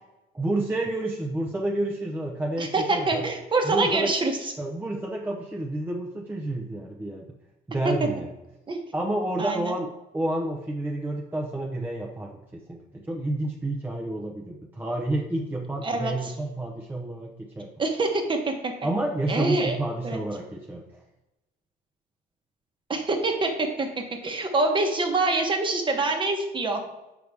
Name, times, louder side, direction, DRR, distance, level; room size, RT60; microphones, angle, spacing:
voice 1, 0.3-3.3 3.6-4.1 4.6-7.3 7.7-8.3 8.9-9.9 10.1-17.7 18.8-20.8, right 1 dB, 10° right, -1 dB, 0.7 m, -29 dB
voice 2, 2.6-4.5 8.7-8.8 9.4-9.7 15.8-16.3 17.8-18.7 19.3-19.8 20.0-20.2 22.9-26.8, right 3 dB, 30° right, 4 dB, 1.1 m, -25 dB
6.6 x 4.7 x 3.5 m, 0.96 s
cardioid pair, 110°, 17 cm